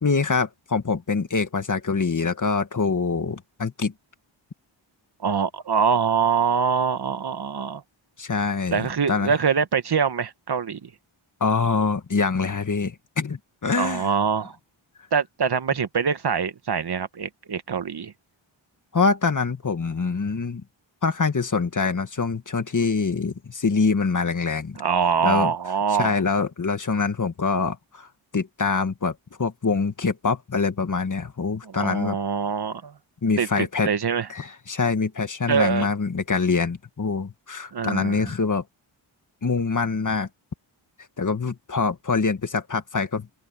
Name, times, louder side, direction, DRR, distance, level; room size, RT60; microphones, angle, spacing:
voice 1, 0.0-3.9 8.2-9.3 11.4-14.1 18.9-20.6 21.0-24.8 25.2-25.5 25.9-28.1 28.3-32.2 33.2-33.9 34.3-38.6 39.4-40.3 41.2-43.3, left 4 dB, 40° left, 1.7 m, -24 dB
voice 2, 5.2-7.8 8.7-10.9 13.7-14.6 15.1-18.1 24.8-26.2 31.6-32.9 33.4-34.3 35.5-35.9 37.7-38.3, right 6 dB, 55° right, 1.2 m, -24 dB
open air
wide cardioid pair, 105°, 48 cm